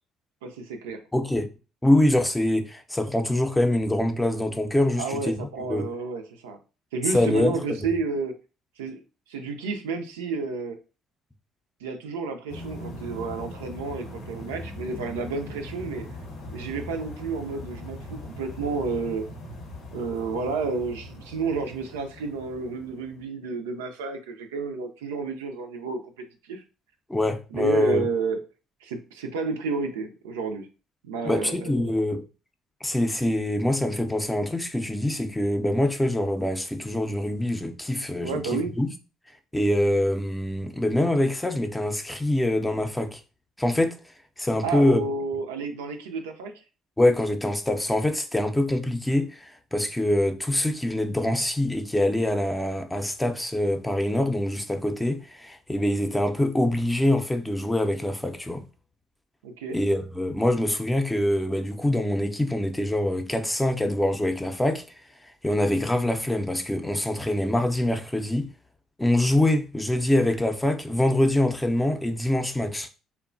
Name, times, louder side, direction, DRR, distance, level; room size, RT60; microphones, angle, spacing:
voice 1, 0.4-1.0 5.0-6.6 6.9-8.3 8.8-9.0 9.3-10.8 11.8-16.0 16.5-19.3 19.9-26.6 27.5-28.4 28.8-30.7 31.0-31.9 38.2-38.7 44.6-46.5 59.4-59.8, right 4 dB, 85° right, 0.4 m, -31 dB
voice 2, 1.1-1.5 1.8-5.9 7.1-7.5 27.1-28.1 31.2-32.3 32.8-38.9 39.5-43.2 43.6-44.0 44.4-45.0 47.0-58.7 59.7-64.8 65.4-68.5 69.0-72.9, left 1 dB, 10° left, 0.5 m, -24 dB
sound 1, 12.5-23.2, left 1 dB, 75° left, 0.7 m, -40 dB
2.9 x 2.1 x 2.5 m
hypercardioid pair, 55°, 0 cm